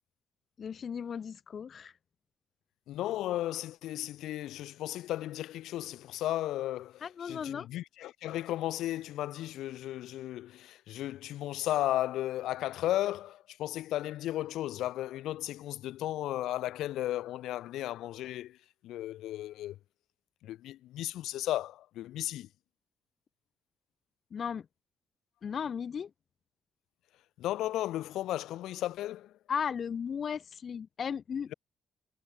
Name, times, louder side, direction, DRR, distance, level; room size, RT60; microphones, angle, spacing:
voice 1, 0.6-1.9 7.0-7.7 24.3-24.7 25.4-26.1 29.5-31.5, left 7 dB, 50° left, 5.2 m, -36 dB
voice 2, 2.9-18.6 18.8-19.8 20.4-22.5 27.4-29.3, left 14 dB, 85° left, 3.8 m, -35 dB
cardioid pair, 90°, 0 cm